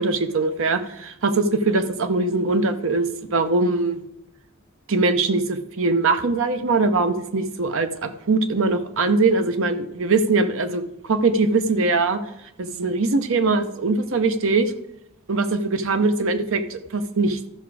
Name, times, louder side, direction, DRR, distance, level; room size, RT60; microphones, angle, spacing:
voice 1, 0.0-4.0 4.9-12.2 12.6-14.7 15.3-17.4, right 3 dB, 65° right, 9 dB, 0.7 m, -22 dB
13.0 x 5.9 x 4.8 m, 0.86 s
head